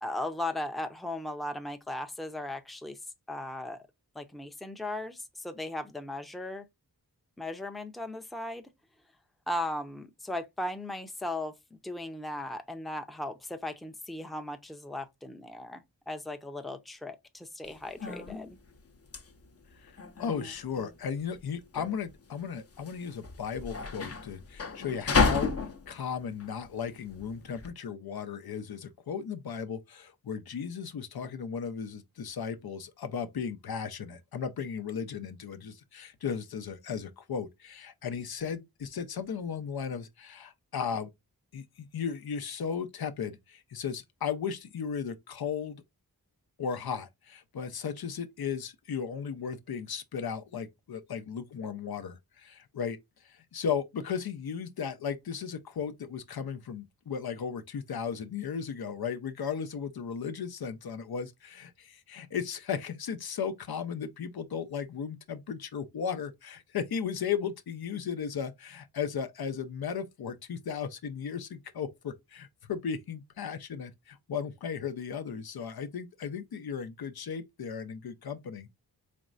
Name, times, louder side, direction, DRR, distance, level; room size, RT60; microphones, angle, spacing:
voice 1, 0.0-3.0 3.3-3.8 4.1-6.7 7.4-8.6 9.5-18.6, left 1 dB, ahead, 0.5 m, -37 dB
sound 1, 17.6-27.7, left 4 dB, 40° left, 0.6 m, -33 dB
voice 2, 19.8-25.5 25.9-41.1 41.5-45.8 46.6-78.7, left 7 dB, 75° left, 0.6 m, -36 dB
4.3 x 3.1 x 2.4 m
wide cardioid pair, 90°, 38 cm